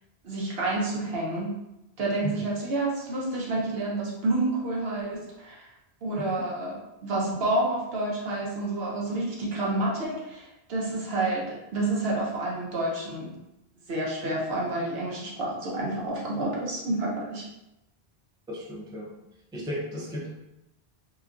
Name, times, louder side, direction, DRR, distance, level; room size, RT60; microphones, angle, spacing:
voice 1, 0.2-1.5 2.0-5.7 6.0-6.7 7.0-13.3 13.9-17.4, right 2 dB, 70° right, -4 dB, 1.0 m, -29 dB
voice 2, 18.5-19.1 19.5-20.3, left 1 dB, 5° right, -5 dB, 0.4 m, -34 dB
2.9 x 2.3 x 2.5 m, 0.89 s
omnidirectional pair, 1.0 m